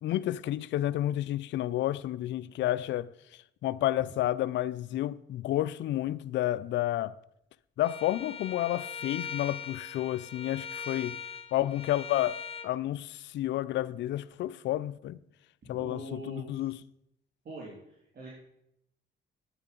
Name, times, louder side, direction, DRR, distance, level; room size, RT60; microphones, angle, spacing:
voice 1, 0.0-3.1 3.6-7.2 7.8-11.2 11.5-15.2 15.7-16.8, left 14 dB, 65° left, 0.4 m, -30 dB
voice 2, 2.4-2.7 15.8-16.6 17.4-18.3, right 1 dB, 55° right, 3.3 m, -44 dB
Bowed string instrument, 7.8-12.7, left 7 dB, 30° left, 0.8 m, -40 dB
9.0 x 8.6 x 5.2 m
cardioid pair, 90°, 20 cm